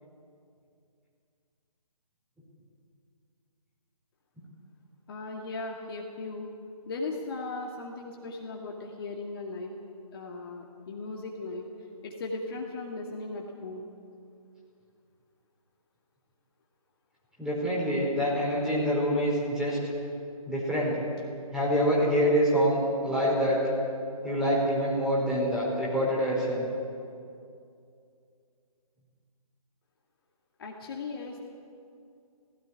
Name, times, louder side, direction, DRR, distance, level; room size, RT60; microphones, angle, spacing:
voice 1, 5.1-6.5 6.9-9.7 10.1-11.7 12.0-13.9 30.6-31.4, left 3 dB, 40° left, -1 dB, 2.2 m, -37 dB
voice 2, 17.4-19.8 20.5-21.0 21.5-23.6 24.2-26.7, equal, 5° right, -6 dB, 4.7 m, -26 dB
17.5 x 16.0 x 9.8 m, 2.5 s
figure-of-eight pair, 150°, 19 cm